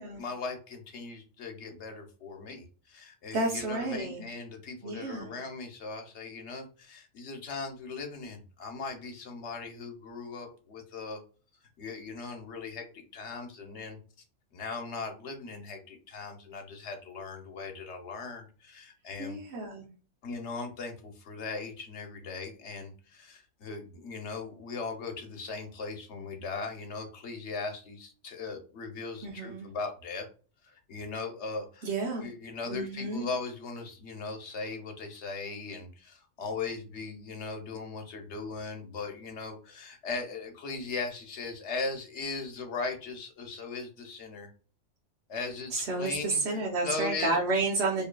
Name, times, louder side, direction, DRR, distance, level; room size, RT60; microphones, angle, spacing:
voice 1, 0.2-11.2 11.8-14.0 14.5-19.4 20.2-30.3 30.6-31.9 32.2-44.5 45.3-47.4, left 4 dB, 65° left, 4 dB, 1.0 m, -39 dB
voice 2, 3.3-4.2 4.8-5.3 19.2-19.9 29.2-29.7 31.8-32.3 32.7-33.3 45.7-48.1, right 3 dB, 60° right, -1 dB, 1.0 m, -31 dB
4.9 x 2.6 x 2.2 m, 0.38 s
omnidirectional pair, 1.3 m